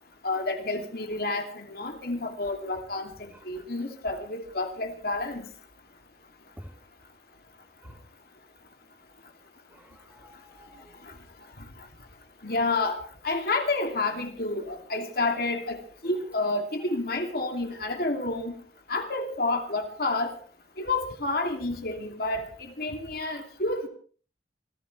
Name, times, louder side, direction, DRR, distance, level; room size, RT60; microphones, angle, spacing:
voice 1, 0.2-5.5 11.0-11.1 11.6-11.7 12.4-13.0 13.2-18.6 18.9-20.3 20.8-23.9, left 2 dB, 55° left, 4 dB, 2.7 m, -29 dB
voice 2, 9.7-11.0 12.5-12.6 16.0-16.4 19.0-19.1 23.3-23.5, equal, 10° right, 3 dB, 3.3 m, -51 dB
27.0 x 15.5 x 3.3 m, 0.40 s
head